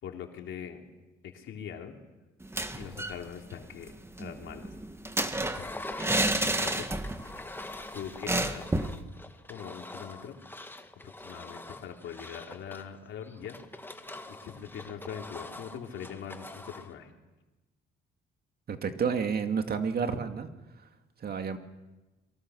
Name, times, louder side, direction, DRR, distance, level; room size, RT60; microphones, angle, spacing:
voice 1, 0.0-0.8 1.2-2.0 2.7-3.9 4.2-4.7 5.4-6.0 6.4-6.9 7.9-8.7 9.5-10.4 11.0-13.6 14.3-17.1, left 8 dB, 75° left, 3 dB, 3.2 m, -42 dB
sound 1, 2.4-3.2 3.5-3.6 3.9-7.3 7.6-7.8 8.3-9.0, right 2 dB, 10° right, 1.7 m, -30 dB
Engine, 5.5-16.9, left 2 dB, 10° left, 1.8 m, -44 dB
voice 2, 18.7-20.5 21.2-21.6, right 6 dB, 50° right, 7 dB, 2.3 m, -30 dB
28.5 x 23.0 x 6.4 m, 1.1 s
cardioid pair, 90°, 20 cm